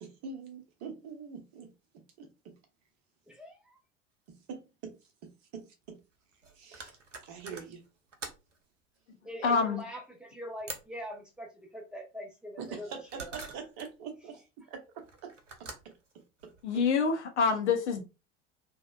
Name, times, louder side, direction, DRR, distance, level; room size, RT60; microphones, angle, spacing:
voice 1, 0.0-2.5 4.3-6.0 6.5-7.0 7.2-7.8 12.6-16.8, right 6 dB, 40° right, 0.7 m, -45 dB
voice 2, 3.3-3.8 9.2-13.3, equal, 5° right, 0.6 m, -43 dB
sound 1, 4.3-4.4 4.6-4.7 5.8-8.6 10.6-11.1 12.6-13.9 14.9-16.6, right 3 dB, 85° right, 0.5 m, -46 dB
voice 3, 9.4-9.8 16.6-18.0, left 5 dB, 70° left, 0.7 m, -26 dB
2.8 x 2.0 x 2.2 m
figure-of-eight pair, 75°, 35 cm